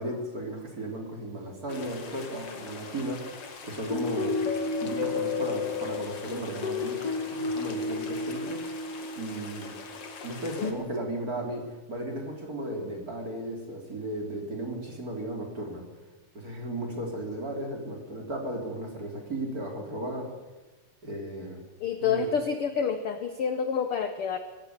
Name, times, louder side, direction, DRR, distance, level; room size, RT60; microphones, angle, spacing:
voice 1, 0.0-4.4 4.8-7.0 7.3-8.6 9.2-9.7 10.2-15.8 16.3-20.3 21.0-21.6 22.0-22.3, right 1 dB, 25° right, 1 dB, 3.6 m, -35 dB
sound 1, 1.7-10.7, left 4 dB, 45° left, 2.9 m, -33 dB
voice 2, 21.8-24.4, left 6 dB, 70° left, 8 dB, 1.3 m, -28 dB
25.5 x 14.5 x 8.2 m, 1.2 s
omnidirectional pair, 4.0 m